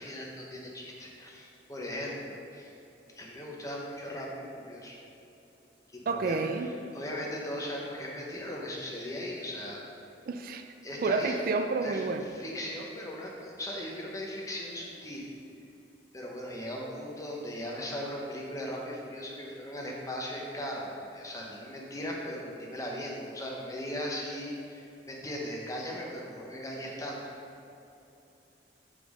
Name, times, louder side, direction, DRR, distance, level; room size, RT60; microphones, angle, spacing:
voice 1, 0.0-2.8 3.2-5.0 5.9-9.8 10.8-11.4 11.8-15.3 16.1-27.2, equal, 20° left, -2 dB, 1.0 m, -38 dB
voice 2, 6.1-6.7 10.3-10.7 11.0-12.3, right 4 dB, 50° right, 7 dB, 0.3 m, -30 dB
6.0 x 5.1 x 4.9 m, 2.8 s
head